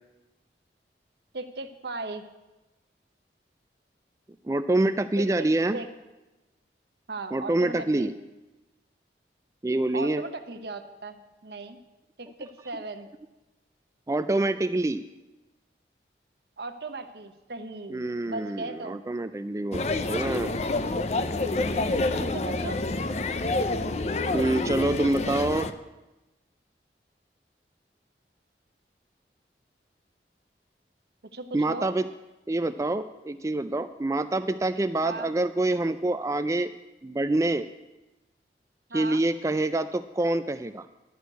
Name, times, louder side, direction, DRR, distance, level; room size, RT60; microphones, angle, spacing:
voice 1, 1.3-2.2 5.2-5.5 5.7-5.9 7.1-8.1 9.9-11.2 11.4-11.8 12.2-13.1 16.6-19.0 21.7-22.8 31.3-31.9 35.0-35.3 38.9-39.2, right 3 dB, 65° right, 8 dB, 0.9 m, -37 dB
voice 2, 4.4-5.8 7.3-8.1 9.6-10.2 14.1-15.0 17.9-19.8 20.1-20.6 24.3-25.7 31.5-32.1 32.5-36.7 37.0-37.6 38.9-40.9, right 2 dB, 15° right, 11 dB, 0.3 m, -26 dB
sound 1, 19.7-25.7, left 2 dB, 40° left, 0.5 m, -28 dB
11.0 x 6.5 x 9.2 m, 1.0 s
head